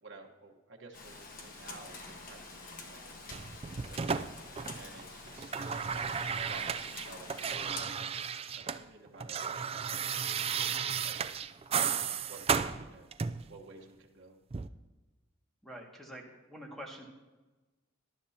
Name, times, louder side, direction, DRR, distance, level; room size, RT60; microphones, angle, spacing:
voice 1, 0.0-4.2 4.7-5.5 6.4-8.2 8.6-10.0 10.5-10.7 11.0-11.2 11.8-13.1 13.5-14.4, right 3 dB, 55° right, 0 dB, 1.3 m, -52 dB
Rain, 0.9-7.8, left 3 dB, 45° left, 1.3 m, -47 dB
sound 1, 3.3-5.0 5.3-8.8 9.1-13.5 14.5-14.7, right 6 dB, 30° right, 0.4 m, -34 dB
voice 2, 15.6-17.1, equal, ahead, -1 dB, 1.9 m, -46 dB
19.0 x 11.5 x 2.8 m, 1.2 s
head